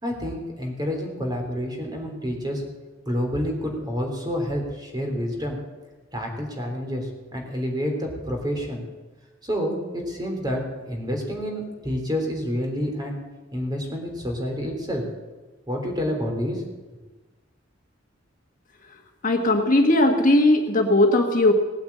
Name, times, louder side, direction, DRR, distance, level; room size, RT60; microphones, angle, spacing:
voice 1, 0.0-2.6 3.0-5.6 6.1-8.8 9.4-10.6 10.9-13.2 13.5-15.0 15.7-16.6, equal, 20° right, 1 dB, 3.4 m, -28 dB
voice 2, 19.2-21.5, left 1 dB, 45° left, 3 dB, 1.5 m, -18 dB
18.0 x 8.8 x 8.6 m, 1.2 s
head